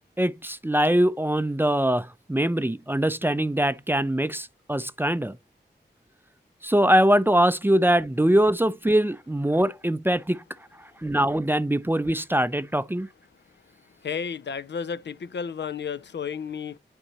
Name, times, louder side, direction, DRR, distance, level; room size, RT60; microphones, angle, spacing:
voice 1, 0.2-5.3 6.6-10.4 11.0-13.1, right 1 dB, 10° right, 0.4 m, -22 dB
voice 2, 14.0-16.8, left 6 dB, 70° left, 0.4 m, -32 dB
9.5 x 4.4 x 3.0 m
cardioid pair, 45°, 19 cm